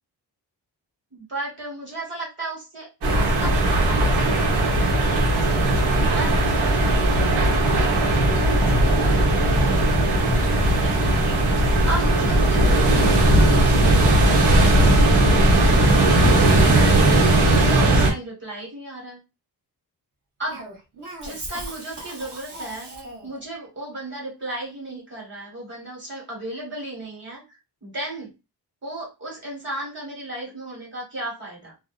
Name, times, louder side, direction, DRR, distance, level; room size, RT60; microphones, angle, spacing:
voice 1, 1.1-2.9 3.2-5.3 5.7-6.7 7.3-8.3 8.8-11.2 11.9-13.3 13.8-19.2 20.4-20.6 21.2-22.9 23.2-28.3 28.8-31.7, right 1 dB, 30° right, -2 dB, 1.3 m, -35 dB
sound 1, 3.0-18.1, right 1 dB, 85° right, 1.1 m, -18 dB
Cough, 20.5-23.4, right 2 dB, 50° right, 1.0 m, -38 dB
2.5 x 2.0 x 2.4 m, 0.27 s
wide cardioid pair, 165°, 40 cm